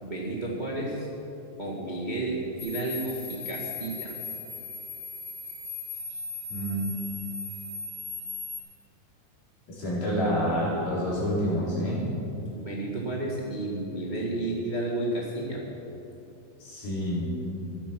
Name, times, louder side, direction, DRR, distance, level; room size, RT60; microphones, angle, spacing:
voice 1, 0.0-1.1 1.6-4.2 6.1-6.2 12.5-15.6, right 2 dB, 30° right, -3 dB, 0.8 m, -32 dB
sound 1, 2.6-8.6, left 3 dB, 55° left, 4.2 m, -38 dB
voice 2, 6.5-6.9 9.7-12.0 16.6-17.3, equal, 80° left, -7 dB, 6.1 m, -28 dB
15.5 x 10.5 x 6.1 m, 2.9 s
omnidirectional pair, 4.2 m